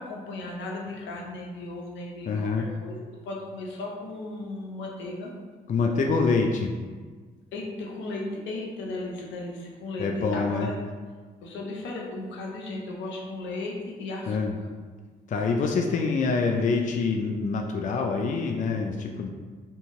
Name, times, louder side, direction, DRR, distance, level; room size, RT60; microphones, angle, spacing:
voice 1, 0.0-3.0 3.2-5.3 7.5-10.8 11.4-14.7, left 2 dB, 75° left, -1 dB, 0.7 m, -36 dB
voice 2, 2.3-2.7 5.7-6.7 10.0-10.7 14.3-14.5 15.3-19.3, left 4 dB, 40° left, 2 dB, 0.4 m, -25 dB
2.7 x 2.6 x 3.6 m, 1.5 s
hypercardioid pair, 45°, 19 cm